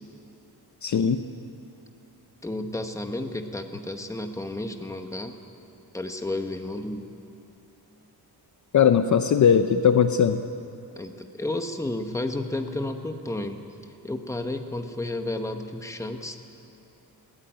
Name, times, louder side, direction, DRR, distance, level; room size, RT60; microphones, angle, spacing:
voice 1, 0.8-1.2 8.7-10.4, left 7 dB, 45° left, 9 dB, 0.6 m, -19 dB
voice 2, 2.4-5.3 5.9-7.1 11.0-13.6 14.0-16.4, left 2 dB, 10° left, 6 dB, 1.0 m, -32 dB
20.5 x 15.5 x 9.2 m, 2.7 s
wide cardioid pair, 180°, 40 cm